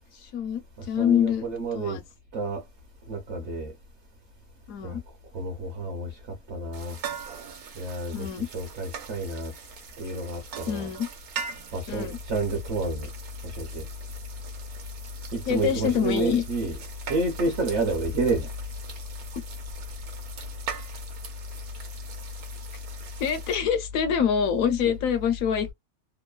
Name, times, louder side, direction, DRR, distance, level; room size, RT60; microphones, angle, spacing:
voice 1, 0.1-1.5 1.7-2.0 4.7-5.0 8.1-8.5 10.7-11.1 11.9-12.2 15.5-16.5 23.2-25.7, left 8 dB, 70° left, 1.0 m, -25 dB
voice 2, 0.8-2.0 2.3-2.6 3.1-3.7 4.8-5.0 5.3-7.0 7.7-9.5 10.0-10.9 11.7-13.1 13.4-13.9 15.3-16.8 17.1-18.5 24.8-24.9, right 2 dB, 55° right, 0.9 m, -30 dB
sound 1, 6.7-23.5, right 6 dB, 80° right, 1.2 m, -42 dB
3.1 x 2.1 x 2.3 m
omnidirectional pair, 1.5 m